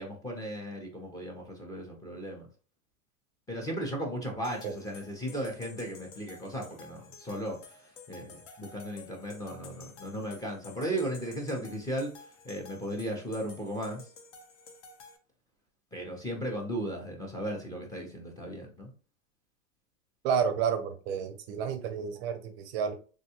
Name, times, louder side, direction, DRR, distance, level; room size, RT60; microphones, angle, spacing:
voice 1, 0.0-2.5 3.5-14.1 15.9-18.9, right 1 dB, 10° left, 1 dB, 0.6 m, -36 dB
sound 1, 4.4-15.2, left 4 dB, 55° left, 0.8 m, -52 dB
voice 2, 20.2-22.9, right 7 dB, 45° right, 8 dB, 0.5 m, -30 dB
3.5 x 2.2 x 2.8 m, 0.37 s
hypercardioid pair, 125°, 42 cm